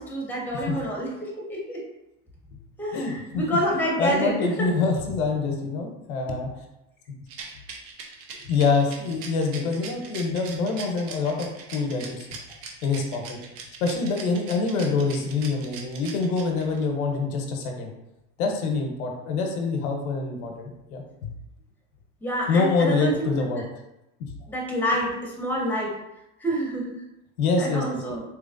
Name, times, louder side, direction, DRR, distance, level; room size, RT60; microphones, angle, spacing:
voice 1, 0.0-1.8 2.8-4.7 22.2-23.5 24.5-25.9 26.4-27.0 27.6-28.2, right 1 dB, 5° left, -3 dB, 1.2 m, -28 dB
voice 2, 2.9-3.4 4.0-6.5 8.4-12.3 12.8-13.2 13.8-17.9 18.4-21.3 22.5-23.6 27.4-28.0, left 4 dB, 85° left, 3 dB, 0.9 m, -25 dB
Rattle, 7.3-16.8, right 6 dB, 55° right, 0.9 m, -40 dB
4.0 x 3.1 x 2.5 m, 0.88 s
supercardioid pair, 105°, 42 cm